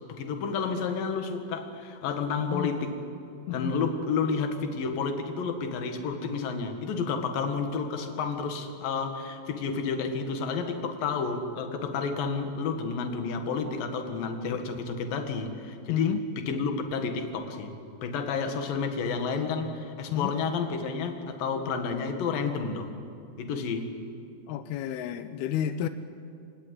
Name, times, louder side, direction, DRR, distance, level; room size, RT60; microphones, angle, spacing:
voice 1, 0.1-3.0 3.5-17.7 18.0-22.9 23.4-23.9, left 5 dB, 60° left, 6 dB, 3.0 m, -30 dB
voice 2, 15.9-16.2 20.1-20.4 24.5-25.9, left 9 dB, 85° left, 11 dB, 2.2 m, -30 dB
27.0 x 17.5 x 9.7 m, 2.5 s
omnidirectional pair, 5.5 m